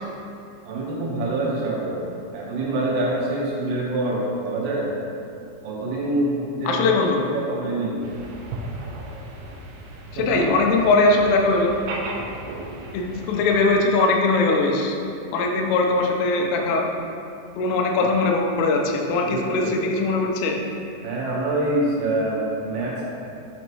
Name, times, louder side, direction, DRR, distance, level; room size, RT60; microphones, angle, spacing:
voice 1, 0.6-2.0 2.3-4.9 5.6-7.0 7.3-8.0 10.2-10.5 19.2-19.8 21.0-23.0, right 2 dB, 70° right, -5 dB, 2.5 m, -25 dB
voice 2, 6.6-7.2 10.1-11.8 12.9-15.0 15.3-16.9 17.6-20.6, left 3 dB, 80° left, 1 dB, 3.2 m, -20 dB
sound 1, 8.0-13.7, right 2 dB, 85° right, 2.4 m, -36 dB
7.1 x 6.4 x 3.0 m, 2.6 s
omnidirectional pair, 5.9 m